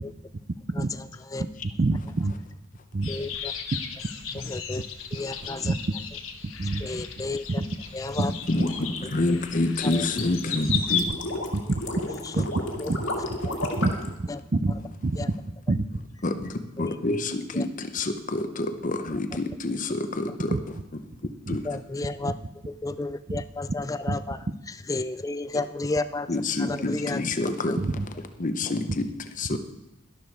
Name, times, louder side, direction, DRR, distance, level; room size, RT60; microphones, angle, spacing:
voice 1, 1.8-2.3 2.9-3.1 5.6-5.8 6.6-6.8 7.6-7.7 8.1-8.3 10.6-10.8 11.5-11.8 12.3-13.0 13.8-13.9 14.2-14.7 15.0-15.2 15.7-16.0 20.5-20.6 21.2-21.6 23.3-23.4 24.1-24.2 27.7-28.1 29.5-29.6, right 2 dB, 40° right, 10 dB, 0.5 m, -26 dB
sound 1, 3.0-11.0, left 7 dB, 85° left, 1.2 m, -35 dB
voice 2, 3.1-3.5 4.3-4.8 5.1-5.7 6.8-7.5 7.9-8.3 9.8-10.1 12.8-12.9 13.4-13.5 14.3-14.4 15.2-15.3 16.8-17.0 17.5-17.7 19.1-19.2 21.6-22.3 22.8-24.4 24.9-27.2 27.7-27.8, left 3 dB, 15° left, 12 dB, 0.4 m, -32 dB
sound 2, 8.1-14.1, left 1 dB, 70° left, 2.0 m, -33 dB
voice 3, 9.1-11.0 16.2-16.5 16.8-20.5 21.5-21.6 26.3-27.8 28.4-29.0 29.4-29.6, left 2 dB, 40° left, 7 dB, 0.8 m, -27 dB
12.0 x 11.5 x 4.6 m, 0.90 s
head